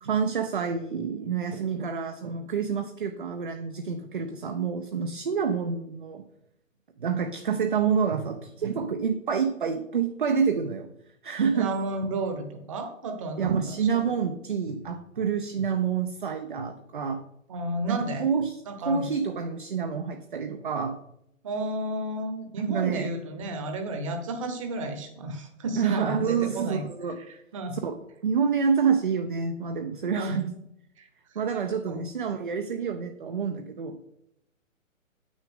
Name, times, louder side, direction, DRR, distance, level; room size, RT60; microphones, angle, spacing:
voice 1, 0.0-6.2 7.0-10.9 11.2-11.7 13.4-17.2 17.9-18.6 18.9-21.0 22.7-23.1 25.8-27.2 27.8-30.5 31.4-34.0, right 6 dB, 40° right, 6 dB, 0.5 m, -28 dB
voice 2, 11.5-14.0 17.5-18.3 18.7-19.1 21.4-26.8 27.2-27.8 30.1-30.4 31.0-31.1 31.9-32.0, right 1 dB, 25° right, 6 dB, 0.9 m, -32 dB
8.2 x 6.1 x 3.7 m, 0.79 s
figure-of-eight pair, 140°, 41 cm